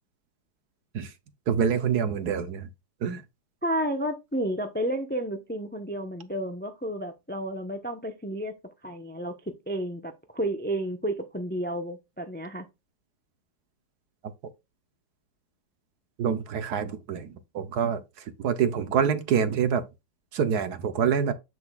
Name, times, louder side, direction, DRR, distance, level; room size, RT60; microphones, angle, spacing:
voice 1, 1.5-2.7 3.0-3.2 16.2-18.0 18.4-19.8 20.3-21.3, right 7 dB, 60° right, 1.3 m, -26 dB
voice 2, 3.6-8.5 8.8-12.6, right 1 dB, 15° left, 0.4 m, -31 dB
8.0 x 7.0 x 2.4 m
omnidirectional pair, 2.0 m